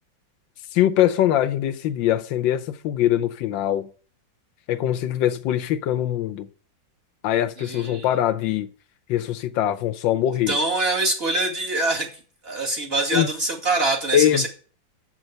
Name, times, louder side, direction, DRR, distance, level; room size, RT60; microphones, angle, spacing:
voice 1, 0.7-3.9 4.7-6.5 7.2-8.7 9.1-10.6 13.1-13.3 14.1-14.5, left 12 dB, 85° left, 1.4 m, -22 dB
voice 2, 7.6-8.1 10.5-12.1 12.4-14.5, right 2 dB, 30° right, 2.6 m, -24 dB
7.9 x 6.3 x 7.7 m
omnidirectional pair, 2.1 m